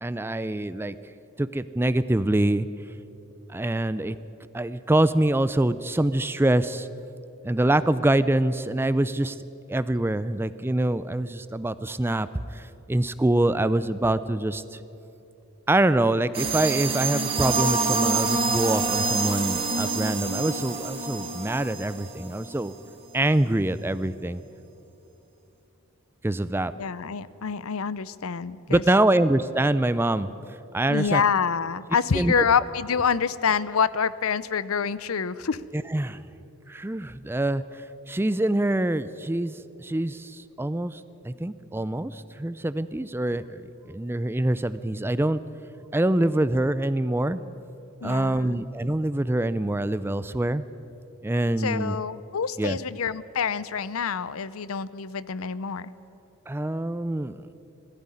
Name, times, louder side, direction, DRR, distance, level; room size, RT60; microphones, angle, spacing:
voice 1, 0.0-1.0 1.4-2.7 3.5-4.2 4.5-6.9 7.4-9.4 9.7-12.3 12.5-14.8 15.7-22.7 23.1-24.4 26.2-26.7 28.7-30.3 30.7-31.2 32.1-32.3 35.7-36.2 36.7-45.4 45.9-47.4 48.0-50.6 51.2-52.0 52.6-52.8 56.5-57.4, right 1 dB, 10° right, 14 dB, 0.4 m, -25 dB
sound 1, 16.3-22.6, right 4 dB, 25° right, 2.0 m, -27 dB
voice 2, 26.8-28.8 30.9-35.6 48.0-48.6 51.6-55.9, left 6 dB, 80° left, 17 dB, 0.6 m, -26 dB
17.5 x 15.0 x 9.9 m, 2.8 s
head